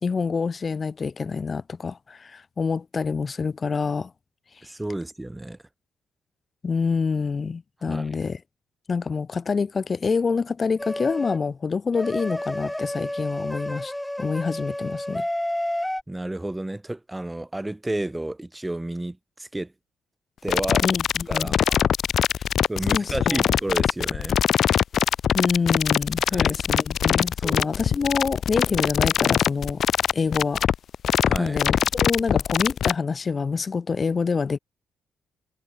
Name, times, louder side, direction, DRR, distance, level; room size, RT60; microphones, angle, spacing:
voice 1, 0.0-4.1 6.6-8.4 8.9-13.9 14.2-15.3 20.8-21.6 22.9-23.4 25.3-29.8 30.1-30.6 31.4-34.6, left 5 dB, 35° left, 2.4 m, -26 dB
voice 2, 4.6-5.6 7.8-8.1 16.1-19.7 20.4-20.8 21.3-21.9 22.7-24.4 26.3-26.5 27.4-27.7 31.2-31.6, right 1 dB, 10° right, 1.6 m, -31 dB
sound 1, 10.8-11.4 11.9-16.0, left 1 dB, 5° left, 3.2 m, -30 dB
sound 2, 20.5-32.9, left 9 dB, 60° left, 1.5 m, -22 dB
cardioid pair, 90°, 0 cm